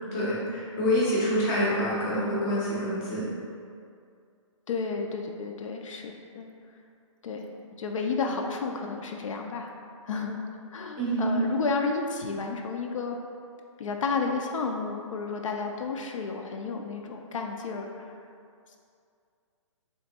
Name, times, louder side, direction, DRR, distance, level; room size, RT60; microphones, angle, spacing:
voice 1, 0.1-3.3 11.0-11.4, equal, 15° left, -8 dB, 0.5 m, -26 dB
voice 2, 4.7-6.5 7.2-7.5 7.8-9.7 10.0-10.4 10.7-13.2 13.8-18.2, left 4 dB, 75° left, 2 dB, 0.4 m, -32 dB
3.4 x 3.0 x 2.7 m, 2.3 s
hypercardioid pair, 170°, 17 cm